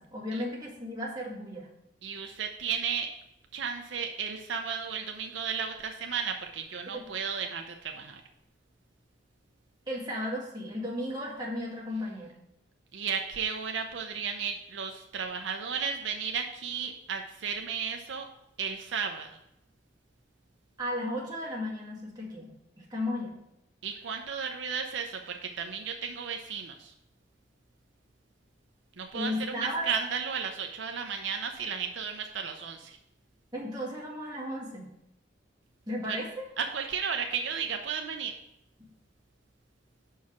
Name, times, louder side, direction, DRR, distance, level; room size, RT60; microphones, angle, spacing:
voice 1, 0.0-1.7 6.9-7.1 9.9-12.3 20.8-23.4 29.1-29.9 33.5-34.9 35.9-36.4, left 1 dB, 20° right, -5 dB, 1.9 m, -35 dB
voice 2, 2.0-3.1 3.5-8.2 12.9-18.3 18.6-19.4 23.8-26.9 29.0-33.0 36.1-36.2 36.6-38.4, right 6 dB, 75° right, 4 dB, 0.6 m, -34 dB
5.8 x 4.7 x 5.8 m, 0.80 s
head